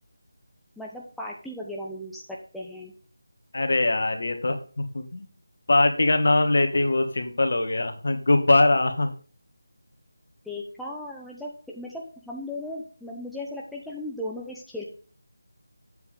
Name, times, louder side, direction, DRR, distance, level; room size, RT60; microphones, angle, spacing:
voice 1, 0.8-2.2 2.5-2.9 10.4-14.8, left 1 dB, ahead, -4 dB, 0.8 m, -36 dB
voice 2, 3.5-5.3 5.7-9.1, left 2 dB, 60° left, 7 dB, 1.8 m, -22 dB
8.1 x 7.1 x 3.7 m, 0.40 s
figure-of-eight pair, 165°, 0 cm